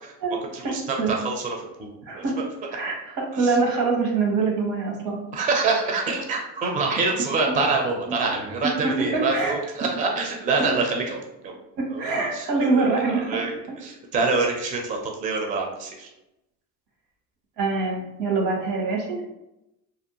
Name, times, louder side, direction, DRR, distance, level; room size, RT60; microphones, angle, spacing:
voice 1, 0.5-1.9 2.2-2.3 3.4-3.6 5.3-11.6 11.9-12.1 12.3-13.5 13.8-16.1, right 3 dB, 20° right, 1 dB, 0.4 m, -26 dB
voice 2, 2.7-5.2 7.5-7.6 8.1-8.2 9.1-9.6 10.6-10.7 11.8-13.4 13.7-13.8 17.6-19.2, right 4 dB, 80° right, -1 dB, 1.0 m, -24 dB
2.5 x 2.0 x 2.9 m, 0.89 s
supercardioid pair, 95°, 42 cm